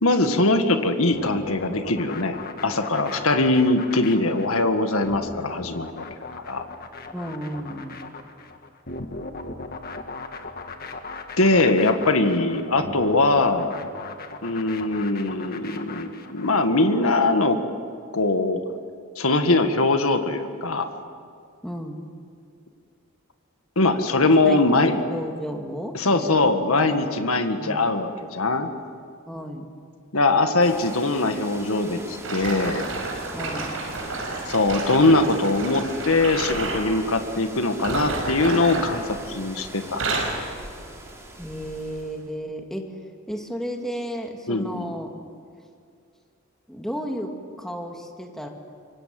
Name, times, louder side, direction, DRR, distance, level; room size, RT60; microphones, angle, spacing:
voice 1, 0.0-2.4 2.6-6.0 6.4-6.6 11.4-13.7 14.4-17.6 18.1-18.6 19.2-20.9 23.7-24.9 25.9-28.7 30.1-32.8 34.5-39.0 39.3-40.3 44.5-44.9, left 2 dB, 80° left, 7 dB, 1.8 m, -21 dB
sound 1, 1.1-16.5, left 3 dB, 45° left, 1.7 m, -38 dB
voice 2, 7.1-8.0 21.6-22.1 24.4-26.4 26.9-27.0 27.6-27.8 29.3-29.6 33.3-33.7 41.4-42.9 43.3-45.1 46.7-47.3 47.6-48.5, equal, ahead, 2 dB, 2.2 m, -33 dB
sound 2, 30.6-42.3, right 1 dB, 15° right, 3.8 m, -41 dB
sound 3, 32.2-36.9 37.7-39.5 39.8-40.4 41.1-41.3 41.9-42.0, right 3 dB, 70° right, 6.0 m, -30 dB
26.5 x 23.5 x 7.8 m, 2.3 s
head